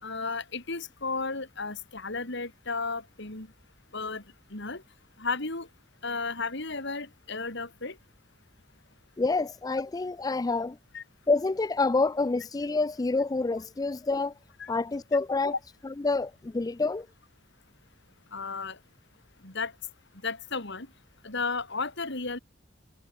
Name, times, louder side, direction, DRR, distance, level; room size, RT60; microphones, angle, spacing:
voice 1, 0.0-3.5 3.9-4.2 4.5-4.8 5.2-5.7 6.0-8.0 10.9-11.0 14.6-14.7 18.3-18.8 19.4-19.7 20.2-20.9 21.2-22.4, left 4 dB, 60° left, 4.3 m, -33 dB
voice 2, 9.2-10.8 11.3-14.3 14.7-15.5 15.8-17.1, left 3 dB, 20° left, 0.4 m, -27 dB
head